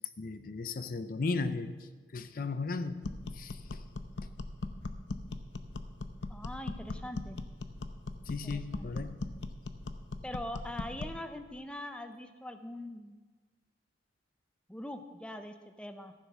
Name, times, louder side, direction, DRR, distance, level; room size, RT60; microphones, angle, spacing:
voice 1, 0.2-1.8 2.1-3.1 3.3-3.8 8.3-9.2, left 3 dB, 50° left, 12 dB, 0.5 m, -35 dB
sound 1, 3.0-11.2, left 2 dB, 85° left, 0.7 m, -40 dB
voice 2, 6.3-7.4 8.3-8.9 10.2-13.2 14.7-16.1, left 1 dB, 5° left, 7 dB, 0.6 m, -42 dB
14.5 x 7.2 x 6.0 m, 1.3 s
head